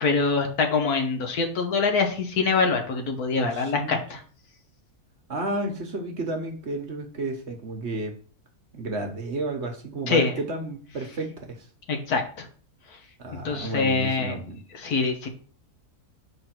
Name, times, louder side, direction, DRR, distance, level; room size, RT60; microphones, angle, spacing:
voice 1, 0.0-4.2 10.1-10.3 11.9-12.5 13.4-14.3 14.7-15.3, left 4 dB, 75° left, 4 dB, 1.6 m, -24 dB
voice 2, 3.3-4.0 5.3-8.1 8.7-11.6 13.2-14.6, right 2 dB, 50° right, 3 dB, 1.2 m, -32 dB
5.6 x 4.0 x 5.9 m, 0.43 s
omnidirectional pair, 1.7 m